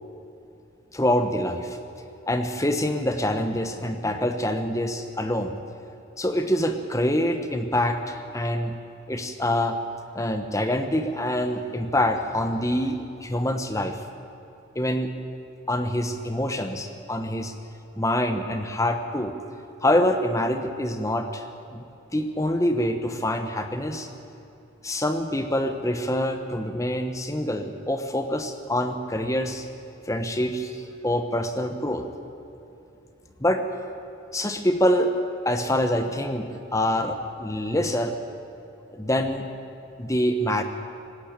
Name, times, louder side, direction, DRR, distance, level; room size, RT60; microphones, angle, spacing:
voice 1, 0.9-1.8 2.3-5.6 6.2-8.7 9.1-9.8 10.1-14.0 14.7-15.1 15.7-17.5 17.9-19.3 19.8-21.5 21.7-21.8 22.1-24.1 24.8-29.7 30.0-32.1 33.4-33.6 34.3-35.1 35.4-38.2 38.9-39.5 40.0-40.6, left 1 dB, 15° left, 7 dB, 1.2 m, -25 dB
18.5 x 16.5 x 8.9 m, 2.8 s
head